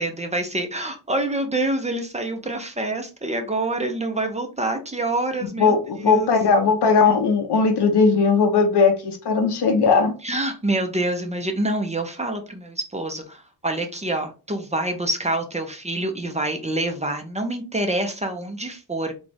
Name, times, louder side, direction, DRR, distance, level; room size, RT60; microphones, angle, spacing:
voice 1, 0.0-6.3 10.2-19.1, right 2 dB, 15° right, 0.8 m, -26 dB
voice 2, 5.4-10.1, left 5 dB, 80° left, 0.9 m, -18 dB
4.0 x 2.4 x 3.5 m
cardioid pair, 75°, 40 cm